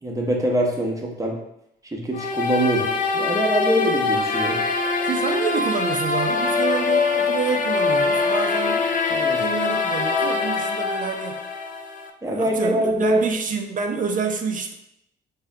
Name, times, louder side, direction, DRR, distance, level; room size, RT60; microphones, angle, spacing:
voice 1, 0.0-1.4 1.9-4.6 9.1-9.4 12.2-13.2, right 1 dB, 15° right, 0 dB, 0.8 m, -23 dB
sound 1, 2.1-12.1, left 4 dB, 40° left, 0.5 m, -23 dB
voice 2, 5.0-8.8 9.4-11.4 12.3-14.7, right 5 dB, 40° right, 4 dB, 0.5 m, -27 dB
3.6 x 2.7 x 3.3 m, 0.78 s
cardioid pair, 90°, 20 cm